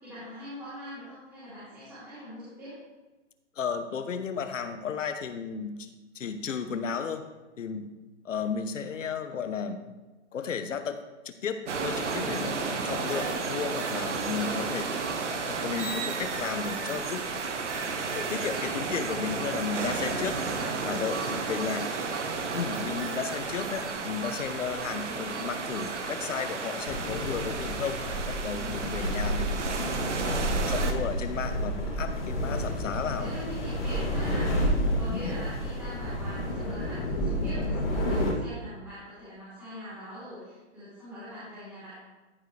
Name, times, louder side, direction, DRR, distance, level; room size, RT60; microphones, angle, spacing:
voice 1, 0.0-2.7 14.3-14.8 21.0-21.9 28.5-29.1 33.1-34.5 34.9-41.9, equal, 5° right, -15 dB, 2.8 m, -42 dB
voice 2, 3.6-5.9 6.1-7.3 7.6-7.9 8.2-9.8 10.3-14.9 15.5-17.2 18.1-20.4 20.8-21.9 22.5-33.3 35.1-35.4, left 6 dB, 80° left, 9 dB, 1.1 m, -34 dB
sound 1, 11.7-30.9, right 4 dB, 70° right, 1.3 m, -32 dB
sound 2, 26.9-38.3, equal, 35° left, 2.6 m, -30 dB
14.0 x 5.4 x 3.4 m, 1.2 s
hypercardioid pair, 180°, 37 cm